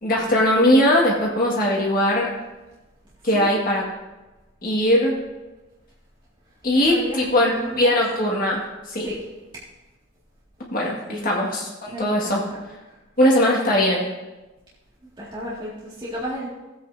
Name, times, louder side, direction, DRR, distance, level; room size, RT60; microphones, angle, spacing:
voice 1, 0.0-2.3 3.2-3.8 4.6-5.1 6.6-8.6 8.9-9.1 10.7-12.4 13.2-14.1, left 1 dB, 45° left, -3 dB, 1.9 m, -20 dB
voice 2, 6.7-8.0 9.0-9.2 11.1-11.3 11.9-13.0 15.2-16.5, equal, 25° right, -8 dB, 2.2 m, -33 dB
17.0 x 8.4 x 2.7 m, 1.1 s
head